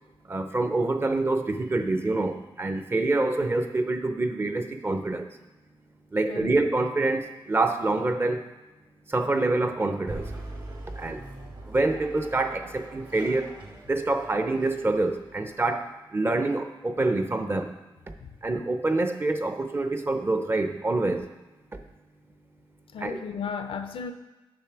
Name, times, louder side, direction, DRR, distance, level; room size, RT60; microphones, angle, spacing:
voice 1, 0.3-5.3 6.1-8.4 9.1-10.3 11.0-11.2 11.7-13.5 13.9-17.7 18.4-21.3 23.0-23.2, right 2 dB, 25° right, 7 dB, 0.6 m, -26 dB
voice 2, 6.3-6.6 18.2-18.4 22.9-24.1, left 6 dB, 80° left, 8 dB, 0.6 m, -34 dB
sound 1, 10.1-15.5, right 2 dB, 55° right, 1.8 m, -42 dB
7.0 x 5.7 x 4.6 m, 1.1 s
wide cardioid pair, 105°, 9 cm